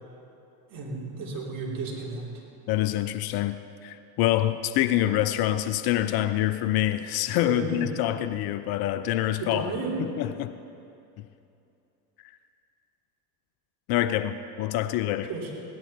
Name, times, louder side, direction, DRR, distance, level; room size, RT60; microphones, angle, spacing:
voice 1, 0.7-2.2 7.4-7.8 9.4-9.9 15.3-15.5, right 3 dB, 45° right, -3 dB, 3.8 m, -33 dB
voice 2, 2.7-9.7 10.0-10.5 11.2-11.3 13.9-15.3, left 13 dB, 50° left, 12 dB, 0.7 m, -26 dB
17.5 x 11.0 x 4.4 m, 2.7 s
hypercardioid pair, 75°, 46 cm